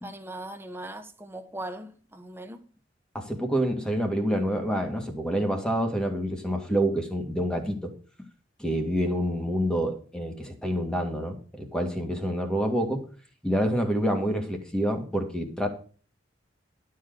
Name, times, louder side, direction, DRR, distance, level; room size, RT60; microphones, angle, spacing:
voice 1, 0.0-2.6, right 1 dB, 10° right, 1.0 m, -39 dB
voice 2, 3.1-7.9 8.6-13.1 13.4-15.7, equal, 5° left, 2.0 m, -27 dB
12.0 x 4.7 x 7.8 m
head